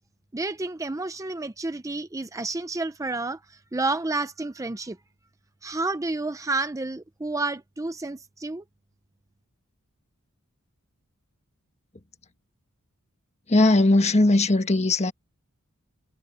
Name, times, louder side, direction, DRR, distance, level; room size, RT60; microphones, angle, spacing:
voice 1, 0.3-5.0 5.6-8.6, right 2 dB, 15° right, 0.6 m, -30 dB
voice 2, 13.5-15.1, left 2 dB, 30° left, 1.4 m, -19 dB
head